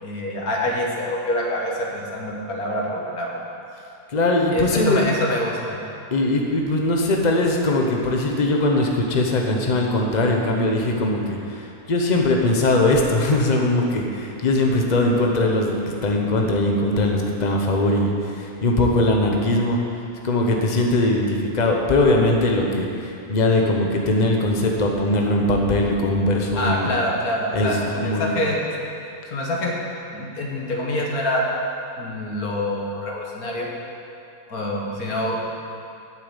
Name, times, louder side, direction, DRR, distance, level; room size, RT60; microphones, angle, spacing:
voice 1, 0.0-3.4 4.5-5.8 26.6-28.7 29.3-29.8 30.1-31.4 32.0-33.7 34.5-35.4, left 1 dB, 75° left, -2 dB, 2.1 m, -26 dB
voice 2, 4.1-5.0 6.1-15.7 16.0-19.8 20.2-26.9 27.5-28.3, left 2 dB, 30° left, 0 dB, 1.1 m, -20 dB
8.8 x 7.6 x 8.2 m, 2.6 s
omnidirectional pair, 1.6 m